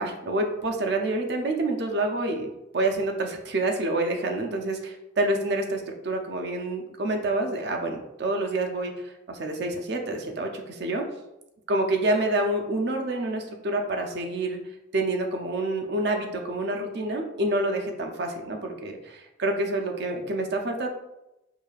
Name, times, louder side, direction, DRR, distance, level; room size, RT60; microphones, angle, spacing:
voice 1, 0.0-11.0 11.7-14.6 14.9-20.9, right 2 dB, 55° right, 3 dB, 0.5 m, -28 dB
4.8 x 2.7 x 2.3 m, 0.92 s
head